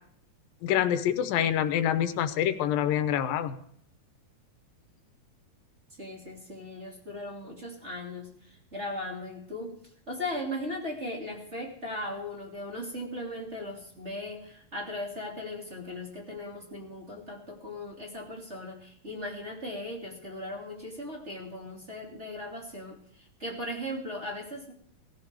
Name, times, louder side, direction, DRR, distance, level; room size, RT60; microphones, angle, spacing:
voice 1, 0.6-3.6, left 10 dB, 90° left, 11 dB, 2.7 m, -26 dB
voice 2, 6.0-9.8 10.1-24.7, left 1 dB, 20° right, 0 dB, 2.8 m, -38 dB
19.0 x 14.5 x 4.8 m, 0.62 s
omnidirectional pair, 3.9 m